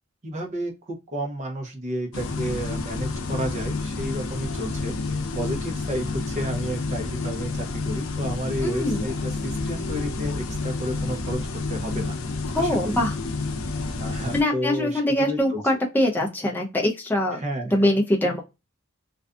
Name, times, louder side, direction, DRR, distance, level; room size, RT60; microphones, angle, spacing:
voice 1, 0.2-12.2 12.6-13.0 14.0-15.6 17.3-17.8, equal, 35° right, 3 dB, 0.7 m, -31 dB
sound 1, 2.1-14.4, left 3 dB, 75° left, 0.5 m, -29 dB
voice 2, 8.6-9.1 12.5-13.1 14.3-17.4 17.7-18.4, left 1 dB, 10° left, -1 dB, 0.4 m, -23 dB
2.5 x 2.2 x 2.3 m, 0.25 s
head